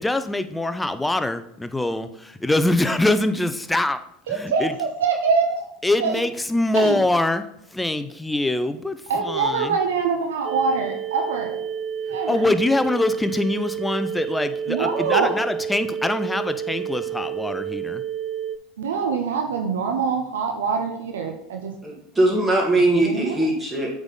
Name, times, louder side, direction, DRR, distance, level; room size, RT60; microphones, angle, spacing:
voice 1, 0.0-4.0 4.3-4.7 5.8-7.5 7.7-9.8 12.3-18.0, left 2 dB, 10° left, 11 dB, 0.5 m, -23 dB
voice 2, 4.3-5.6 6.0-6.2 6.7-7.0 9.1-11.6 12.1-12.5 14.7-15.3 18.8-21.7 22.9-23.4, right 5 dB, 80° right, 3 dB, 0.7 m, -24 dB
sound 1, 10.4-18.6, right 8 dB, 40° right, 0.4 m, -30 dB
voice 3, 21.8-23.9, right 2 dB, 10° right, -2 dB, 2.2 m, -20 dB
8.0 x 3.6 x 3.9 m, 0.74 s
hypercardioid pair, 80°, 0 cm